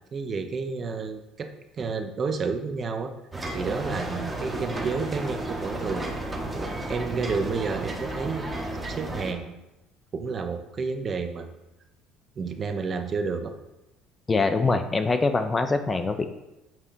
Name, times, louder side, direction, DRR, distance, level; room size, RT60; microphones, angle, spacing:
voice 1, 0.1-1.5 1.8-3.1 3.5-8.6 8.9-9.5 10.1-11.5 12.4-13.5, right 4 dB, 40° right, 7 dB, 0.5 m, -30 dB
sound 1, 3.3-9.3, right 1 dB, 20° right, 0.8 m, -33 dB
voice 2, 14.3-16.3, left 3 dB, 25° left, 8 dB, 0.4 m, -24 dB
7.0 x 2.7 x 2.5 m, 0.96 s
supercardioid pair, 90°, 0 cm